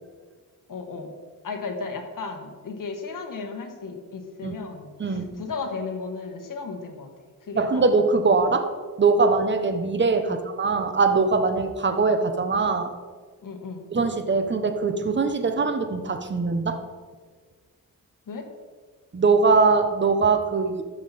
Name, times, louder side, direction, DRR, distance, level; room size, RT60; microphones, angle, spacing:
voice 1, 0.7-1.1 1.4-7.1 7.5-7.8 10.3-10.4 13.4-13.8 18.3-18.5, left 4 dB, 60° left, 3 dB, 1.5 m, -34 dB
voice 2, 7.5-8.7 9.0-12.9 13.9-16.8 19.1-20.8, right 4 dB, 30° right, 7 dB, 1.0 m, -22 dB
14.0 x 5.7 x 4.2 m, 1.5 s
cardioid pair, 85°, 36 cm